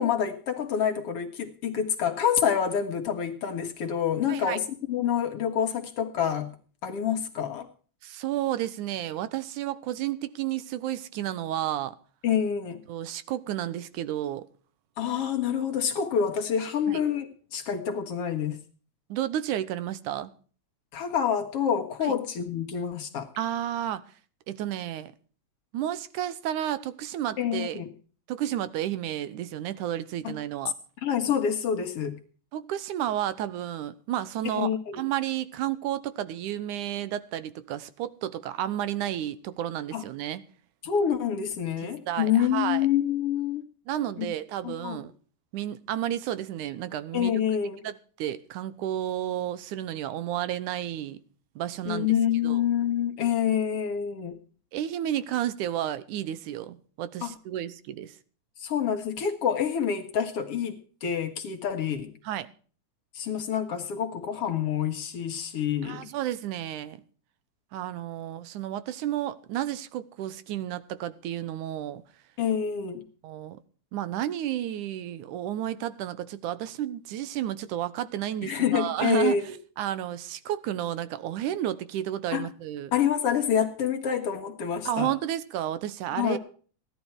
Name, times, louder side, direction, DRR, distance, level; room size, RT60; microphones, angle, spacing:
voice 1, 0.0-6.5 6.8-7.7 12.2-12.8 15.0-18.6 20.9-23.3 27.4-27.9 30.2-30.3 31.0-32.2 34.6-35.0 39.9-40.0 40.8-43.6 44.2-44.3 44.6-45.0 47.1-47.8 51.9-54.4 57.2-57.3 58.6-62.1 63.1-66.1 72.4-73.0 78.4-79.5 82.3-82.5 82.9-85.1 86.2-86.4, left 8 dB, 55° left, 2.2 m, -27 dB
voice 2, 8.0-12.0 12.9-14.5 16.9-17.0 19.1-20.3 22.0-22.1 23.4-24.0 24.5-25.1 25.7-27.8 28.3-30.8 32.5-40.4 41.8-42.9 43.9-45.1 45.5-47.4 47.8-51.2 51.6-52.1 52.4-52.6 54.7-58.2 62.2-62.5 65.8-67.0 67.7-72.0 73.2-73.6 73.9-79.4 79.8-82.9 84.9-86.4, right 12 dB, 75° right, 2.3 m, -31 dB
16.5 x 12.0 x 4.6 m
omnidirectional pair, 3.7 m